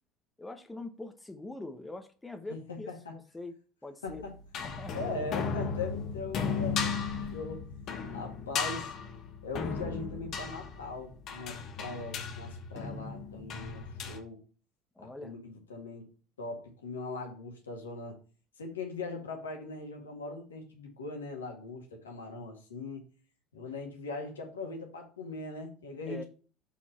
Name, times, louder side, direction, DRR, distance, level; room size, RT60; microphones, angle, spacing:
voice 1, 0.4-3.5 3.8-4.2 4.6-4.9 15.0-15.3 26.1-26.2, left 2 dB, 10° left, 1.1 m, -43 dB
voice 2, 2.5-3.2 4.0-4.3 4.9-8.9 9.4-14.4 15.0-16.1 16.4-18.2 18.6-23.0 23.5-26.2, left 3 dB, 85° left, 1.8 m, -40 dB
sound 1, 4.1-14.2, left 5 dB, 50° left, 1.3 m, -36 dB
7.1 x 4.5 x 4.4 m
hypercardioid pair, 70°, 0 cm